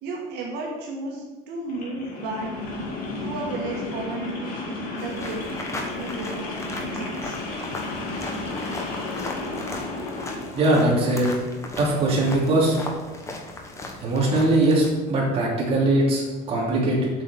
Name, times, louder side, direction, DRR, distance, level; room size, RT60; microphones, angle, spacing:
voice 1, 0.0-2.5 3.2-7.4, right 2 dB, 70° right, -2 dB, 2.1 m, -34 dB
sound 1, 1.7-10.5, left 2 dB, 50° left, 2.5 m, -33 dB
sound 2, 5.0-14.9, left 2 dB, 15° left, 1.2 m, -37 dB
voice 2, 10.5-11.3 11.8-12.8 14.0-17.1, right 2 dB, 35° right, -4 dB, 3.0 m, -21 dB
8.2 x 6.3 x 6.9 m, 1.2 s
cardioid pair, 170°, 18 cm